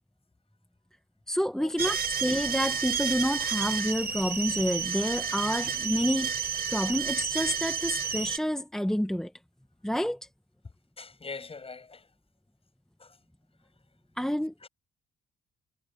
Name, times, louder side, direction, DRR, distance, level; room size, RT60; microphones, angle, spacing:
voice 1, 1.3-6.3 6.7-9.3 9.8-10.2 14.2-14.5, equal, 5° left, 1.1 m, -29 dB
sound 1, 1.8-8.4, right 7 dB, 50° right, 3.8 m, -31 dB
voice 2, 11.0-12.1 13.0-13.1 14.6-14.7, left 4 dB, 30° left, 7.6 m, -42 dB
cardioid pair, 90°, 20 cm